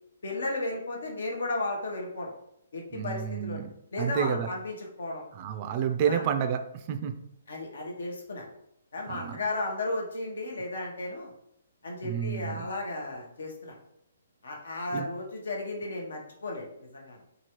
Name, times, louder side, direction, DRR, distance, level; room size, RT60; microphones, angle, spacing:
voice 1, 0.2-2.3 2.7-3.6 3.9-5.2 6.1-6.2 7.5-8.5 8.9-11.3 11.8-13.7 14.4-17.2, left 2 dB, 75° left, 0 dB, 0.9 m, -34 dB
voice 2, 2.9-3.7 4.0-4.5 5.3-7.2 9.1-9.4 12.0-12.6 14.9-15.1, right 8 dB, 35° right, 7 dB, 0.3 m, -30 dB
3.0 x 2.3 x 2.9 m, 0.75 s
hypercardioid pair, 145°, 0 cm